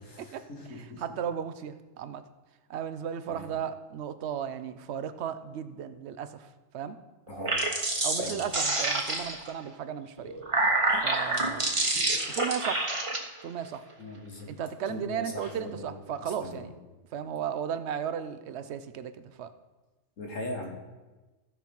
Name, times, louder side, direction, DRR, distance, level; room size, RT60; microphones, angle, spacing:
voice 1, 0.0-1.0 3.3-3.5 7.3-7.5 8.2-8.5 14.0-14.5 14.9-15.9 16.2-16.7 20.2-20.7, left 1 dB, 80° left, 0 dB, 2.2 m, -40 dB
voice 2, 1.0-2.2 2.7-6.5 6.7-7.0 8.0-10.4 11.0-11.7 12.3-12.9 13.4-13.8 14.5-16.7 17.1-19.5, right 8 dB, 65° right, 11 dB, 0.8 m, -35 dB
sound 1, 7.3-9.5 10.2-13.2, right 2 dB, 25° right, 1.1 m, -27 dB
15.0 x 5.5 x 4.5 m, 1.2 s
omnidirectional pair, 1.3 m